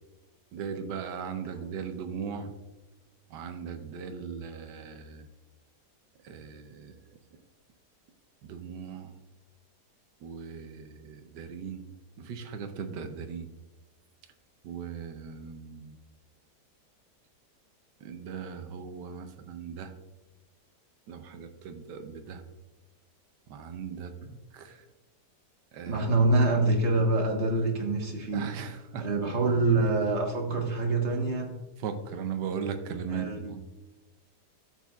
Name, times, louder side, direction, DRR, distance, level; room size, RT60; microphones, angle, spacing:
voice 1, 0.5-2.5 3.3-5.3 6.2-6.9 8.4-9.2 10.2-11.9 12.2-13.5 14.6-16.0 18.0-19.9 21.1-22.4 23.5-24.1 24.5-24.8 25.7-26.1 28.3-29.1 31.8-33.6, right 6 dB, 90° right, 7 dB, 1.4 m, -38 dB
voice 2, 25.9-28.4 29.0-31.5 33.1-33.5, right 2 dB, 45° right, 1 dB, 1.5 m, -25 dB
12.5 x 7.5 x 2.3 m, 1.1 s
omnidirectional pair, 1.8 m